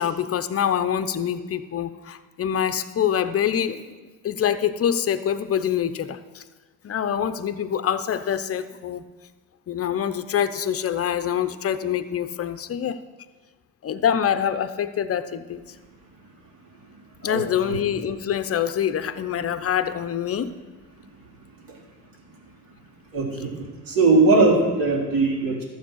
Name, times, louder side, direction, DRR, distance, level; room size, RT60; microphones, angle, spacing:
voice 1, 0.0-3.8 4.2-6.4 6.8-9.0 9.7-13.0 13.8-15.8 17.2-20.6, left 9 dB, 40° left, 11 dB, 0.8 m, -25 dB
voice 2, 17.2-17.8 23.1-23.5 23.9-25.6, right 3 dB, 65° right, -3 dB, 3.8 m, -20 dB
12.5 x 7.6 x 6.3 m, 1.3 s
cardioid pair, 95°, 37 cm